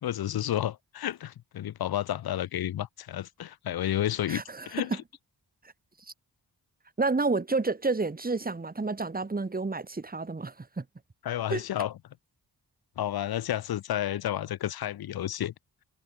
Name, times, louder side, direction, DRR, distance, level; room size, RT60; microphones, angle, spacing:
voice 1, 0.0-5.0 11.2-11.9 13.0-15.5, left 12 dB, 55° left, 0.6 m, -31 dB
voice 2, 4.3-5.0 7.0-10.8 11.5-11.6, right 3 dB, 20° right, 1.3 m, -30 dB
cardioid pair, 60°, 44 cm